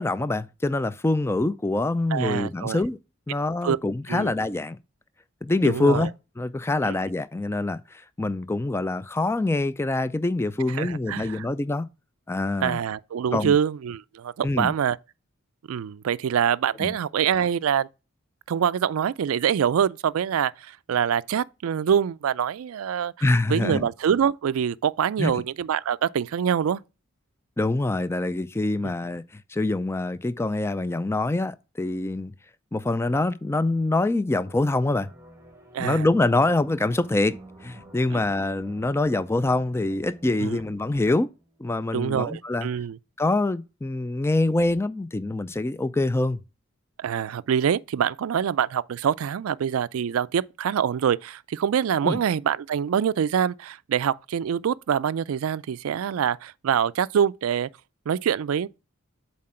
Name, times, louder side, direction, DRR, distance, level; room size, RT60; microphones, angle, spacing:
voice 1, 0.0-3.0 3.3-4.8 5.4-6.1 6.4-11.9 12.3-12.8 13.3-13.6 14.4-14.7 16.8-16.9 23.2-23.9 25.2-25.3 27.6-32.3 32.7-35.1 35.8-41.3 41.6-42.7 43.2-46.4 52.0-52.2, left 2 dB, 10° left, 0.3 m, -25 dB
voice 2, 2.1-2.8 3.6-3.8 4.1-4.3 5.6-6.1 6.9-7.0 10.8-11.4 12.6-15.0 15.7-17.9 18.5-23.1 23.5-26.8 28.8-28.9 35.7-36.1 38.1-38.2 40.4-40.6 41.9-43.0 47.0-57.7 58.1-58.7, right 8 dB, 85° right, 0.4 m, -25 dB
sound 1, 34.3-41.6, right 1 dB, 15° right, 1.1 m, -49 dB
7.5 x 4.3 x 4.3 m
head